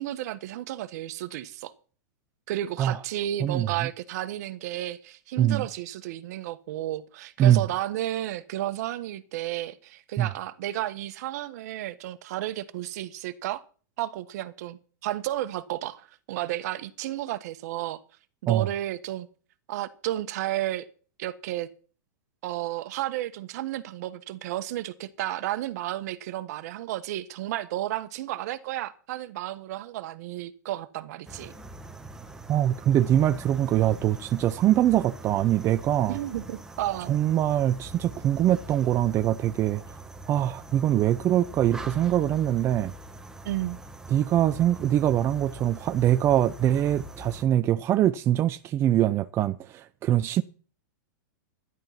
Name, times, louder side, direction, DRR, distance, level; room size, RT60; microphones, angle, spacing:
voice 1, 0.0-1.7 2.5-13.6 14.0-18.0 18.4-19.3 19.7-20.9 21.2-21.7 22.4-31.5 36.1-37.2 43.4-43.8, right 14 dB, 55° right, 1.3 m, -32 dB
voice 2, 3.4-3.9 5.4-5.6 7.4-7.6 10.2-10.3 18.5-18.7 32.5-36.2 37.1-39.8 40.3-42.9 44.1-50.4, right 12 dB, 25° right, 0.5 m, -23 dB
sound 1, 31.3-47.4, equal, 5° right, 1.4 m, -43 dB
12.5 x 11.0 x 5.8 m
hypercardioid pair, 140°, 10 cm